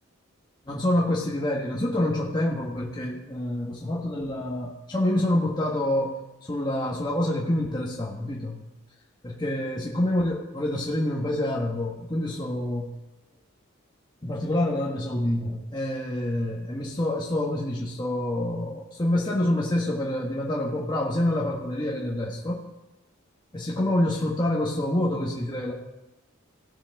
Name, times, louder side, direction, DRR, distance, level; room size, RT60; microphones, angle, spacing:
voice 1, 0.6-8.6 9.2-12.9 14.2-22.6 23.5-25.7, left 1 dB, 20° left, -3 dB, 1.2 m, -27 dB
17.5 x 6.8 x 3.5 m, 0.99 s
head